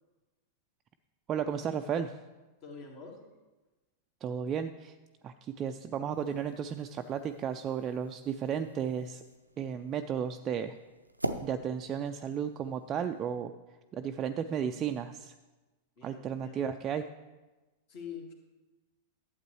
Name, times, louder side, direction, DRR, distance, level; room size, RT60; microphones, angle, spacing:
voice 1, 1.3-2.1 4.2-4.9 5.2-9.2 9.6-10.7 11.4-13.5 13.9-15.3 16.0-17.1, right 8 dB, 30° right, 6 dB, 0.3 m, -34 dB
voice 2, 2.6-3.2 16.0-16.7 17.9-18.3, left 6 dB, 45° left, 1 dB, 1.9 m, -45 dB
sound 1, 6.1-13.3, right 1 dB, 90° right, 0.5 m, -44 dB
12.0 x 8.0 x 3.1 m, 1.2 s
figure-of-eight pair, 95°, 0 cm